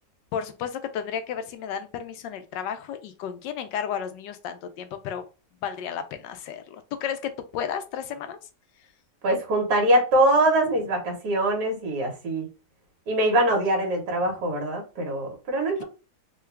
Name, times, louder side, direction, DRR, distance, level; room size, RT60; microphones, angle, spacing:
voice 1, 0.3-5.2 5.6-8.4, left 8 dB, 80° left, 1.3 m, -33 dB
voice 2, 9.2-12.5 13.1-15.8, right 1 dB, 65° right, 1.7 m, -23 dB
3.7 x 2.3 x 3.3 m
omnidirectional pair, 1.9 m